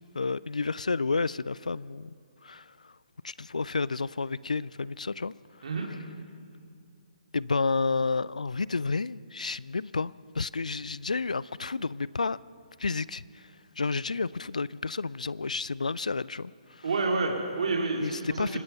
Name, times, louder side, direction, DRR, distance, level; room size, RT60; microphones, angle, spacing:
voice 1, 0.1-2.1 2.4-2.9 3.2-5.3 7.3-12.4 12.8-13.2 13.8-16.8 18.0-18.6, left 4 dB, 70° left, 21 dB, 0.4 m, -30 dB
voice 2, 16.8-18.6, right 3 dB, 55° right, 1 dB, 3.0 m, -29 dB
25.5 x 19.5 x 5.7 m, 2.3 s
figure-of-eight pair, 130°, 4 cm